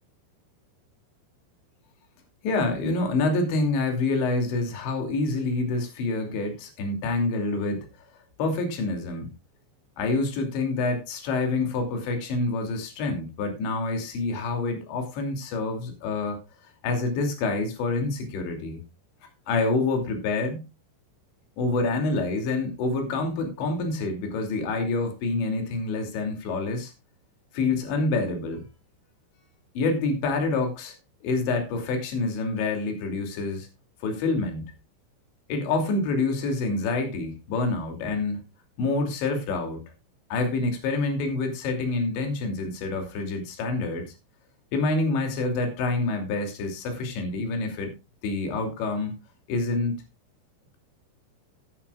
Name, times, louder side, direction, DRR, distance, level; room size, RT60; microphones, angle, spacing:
voice 1, 2.4-7.9 8.4-9.3 10.0-16.4 16.8-18.8 19.5-20.6 21.6-26.9 27.5-28.6 29.8-31.0 31.2-33.7 34.0-34.6 35.5-38.4 38.8-39.8 40.3-44.1 44.7-47.9 48.2-49.2 49.5-49.9, left 3 dB, 65° left, 4 dB, 4.9 m, -27 dB
15.0 x 11.5 x 2.4 m, 0.27 s
omnidirectional pair, 5.6 m